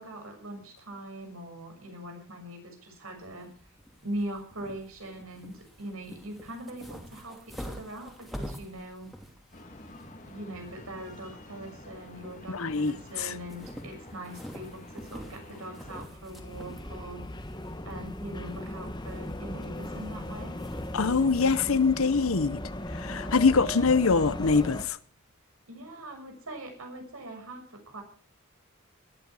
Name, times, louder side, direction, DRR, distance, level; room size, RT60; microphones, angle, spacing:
voice 1, 0.0-3.5 4.0-9.1 10.3-17.2 17.8-20.6 25.7-28.0, right 1 dB, 80° right, 6.6 m, -41 dB
sound 1, 3.2-21.7, equal, ahead, 2.7 m, -47 dB
sound 2, 9.5-16.0, left 1 dB, 35° left, 2.3 m, -48 dB
voice 2, 12.5-13.3 20.9-22.6 22.9-25.0, left 4 dB, 75° left, 0.8 m, -24 dB
sound 3, 16.0-24.8, left 1 dB, 20° left, 1.2 m, -37 dB
20.0 x 13.5 x 4.8 m
head